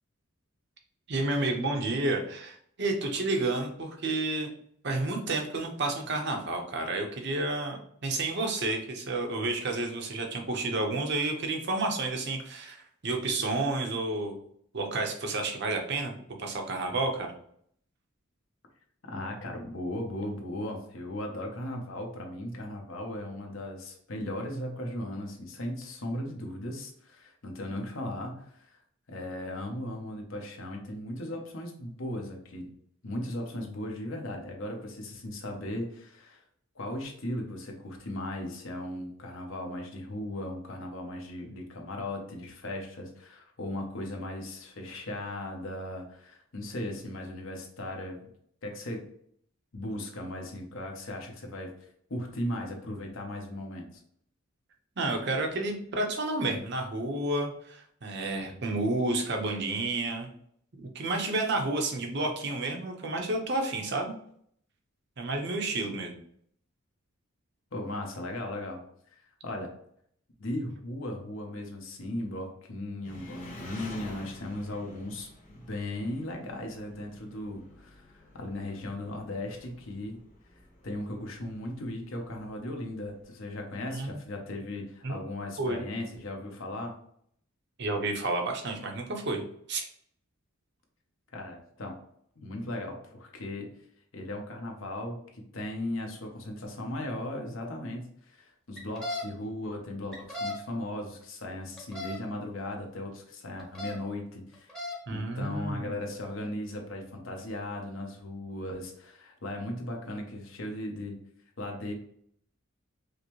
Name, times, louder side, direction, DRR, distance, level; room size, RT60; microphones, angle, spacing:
voice 1, 1.1-4.5 4.8-14.4 14.7-16.1 16.4-17.3 55.0-60.3 60.8-64.1 65.2-66.1 83.9-84.2 85.0-85.2 85.6-85.8 87.8-89.4 89.7-89.9 105.1-106.0, right 2 dB, 55° right, 3 dB, 0.7 m, -30 dB
voice 2, 19.0-28.8 29.1-32.7 33.0-36.4 36.7-48.3 48.6-49.0 49.7-54.0 67.7-68.8 69.1-69.7 70.4-80.2 80.5-86.9 91.3-92.0 92.4-93.7 94.1-111.2 111.6-111.9, left 1 dB, 70° left, 2 dB, 0.8 m, -37 dB
Engine, 73.0-83.2, left 1 dB, 40° left, 1.2 m, -50 dB
sound 1, 98.8-99.2 100.1-100.6 101.8-102.2 103.6-104.0 104.5-105.0, left 2 dB, 5° left, 0.7 m, -35 dB
5.0 x 2.1 x 3.0 m, 0.66 s
head